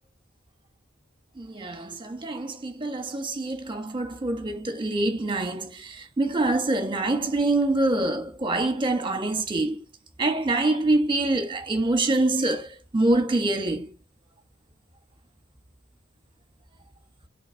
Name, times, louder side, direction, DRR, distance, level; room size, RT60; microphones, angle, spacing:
voice 1, 1.4-9.8 10.2-13.9, right 2 dB, 25° right, 1.4 m, -25 dB
6.7 x 3.9 x 4.7 m
head